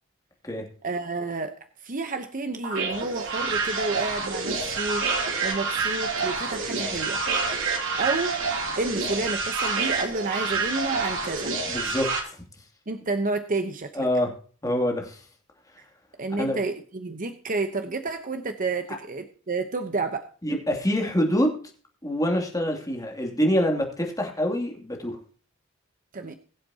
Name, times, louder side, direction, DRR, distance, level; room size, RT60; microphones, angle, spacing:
voice 1, 0.8-1.5 1.8-5.2 5.4-7.2 7.8-8.4 8.8-11.5 12.9-14.1 16.2-20.3 26.1-26.4, right 3 dB, 40° right, 7 dB, 0.9 m, -30 dB
sound 1, 2.6-12.2, right 4 dB, 65° right, 3.1 m, -28 dB
voice 2, 11.7-12.4 13.9-14.3 14.6-15.2 16.4-16.6 20.4-21.6 22.0-25.2, equal, 15° left, 2 dB, 2.7 m, -25 dB
22.0 x 7.7 x 2.9 m, 0.42 s
head